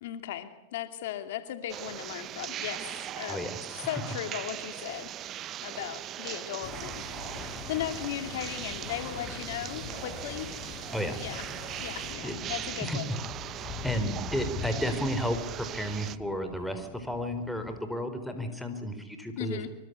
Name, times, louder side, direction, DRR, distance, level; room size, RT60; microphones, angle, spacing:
voice 1, 0.0-10.5 11.2-11.4 11.8-13.1 19.4-19.7, left 11 dB, 75° left, 9 dB, 2.4 m, -37 dB
sound 1, 1.7-16.2, right 12 dB, 40° right, 0.9 m, -40 dB
voice 2, 3.3-3.6 10.9-11.2 12.2-12.3 12.8-13.0 13.5-19.7, equal, ahead, 7 dB, 4.7 m, -32 dB
sound 2, 6.6-12.1, left 7 dB, 45° left, 5.6 m, -45 dB
sound 3, 7.3-17.8, left 5 dB, 30° left, 4.8 m, -44 dB
25.0 x 24.5 x 8.3 m, 0.90 s
hypercardioid pair, 115°, 0 cm